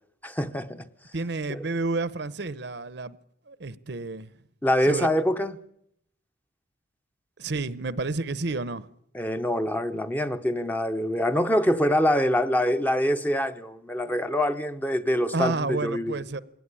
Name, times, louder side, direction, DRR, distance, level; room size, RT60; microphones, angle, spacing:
voice 1, 0.2-0.8 1.5-1.6 4.6-5.5 9.1-16.2, equal, 10° left, 0.8 m, -25 dB
voice 2, 1.1-3.2 3.5-4.3 4.8-5.1 7.4-8.9 15.3-16.4, right 3 dB, 55° right, 0.8 m, -30 dB
21.5 x 17.5 x 9.9 m
head